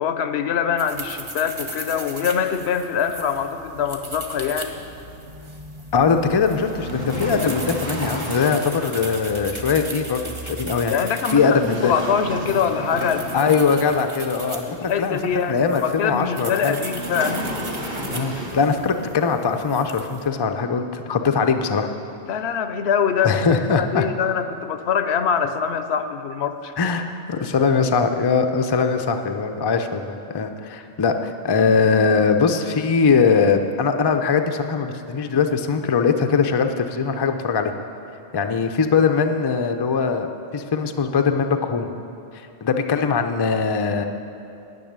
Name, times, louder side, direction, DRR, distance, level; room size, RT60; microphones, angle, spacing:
voice 1, 0.0-4.8 10.9-13.5 14.7-17.5 22.3-26.7, left 7 dB, 75° left, 9 dB, 0.9 m, -24 dB
sound 1, 0.8-20.3, right 2 dB, 30° right, 0.9 m, -37 dB
voice 2, 5.9-10.9 11.3-11.9 13.3-15.2 15.5-16.8 18.1-21.9 23.2-24.1 26.8-37.7 38.3-41.9 42.6-44.0, left 5 dB, 35° left, 6 dB, 0.4 m, -21 dB
sound 2, 6.5-8.8 11.3-14.1 16.8-18.8, equal, 85° right, 2.2 m, -31 dB
10.5 x 6.2 x 8.7 m, 2.7 s
omnidirectional pair, 1.1 m